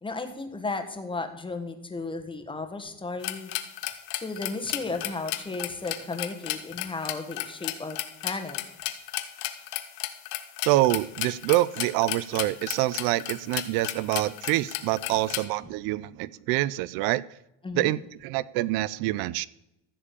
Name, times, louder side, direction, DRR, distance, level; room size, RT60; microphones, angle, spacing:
voice 1, 0.0-3.5 4.2-8.0 8.2-8.6 17.6-18.0, left 3 dB, 15° left, 7 dB, 1.4 m, -34 dB
sound 1, 3.2-15.4, left 14 dB, 85° left, 1.3 m, -33 dB
voice 2, 10.6-17.2 17.8-19.5, right 17 dB, 75° right, 19 dB, 0.5 m, -26 dB
15.0 x 5.0 x 8.5 m, 0.86 s
cardioid pair, 130°, 36 cm